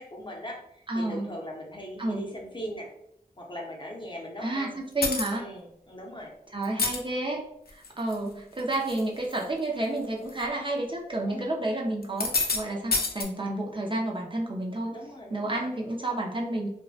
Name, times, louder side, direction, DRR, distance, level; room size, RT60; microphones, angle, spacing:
voice 1, 0.0-2.9 3.4-4.8 5.4-6.3 11.3-11.6 14.9-15.7, equal, 30° left, -1 dB, 0.6 m, -40 dB
voice 2, 0.9-1.3 2.0-2.3 4.4-5.4 6.5-15.0 15.3-16.7, right 2 dB, 30° right, -1 dB, 0.4 m, -30 dB
sound 1, 5.0-5.4 6.6-7.0 7.7-8.1 8.6-9.0 9.3-9.4 10.3-10.4 12.0-12.6 12.9-13.2, left 3 dB, 75° left, 0.4 m, -27 dB
2.5 x 2.1 x 2.3 m, 0.74 s
wide cardioid pair, 55°, 16 cm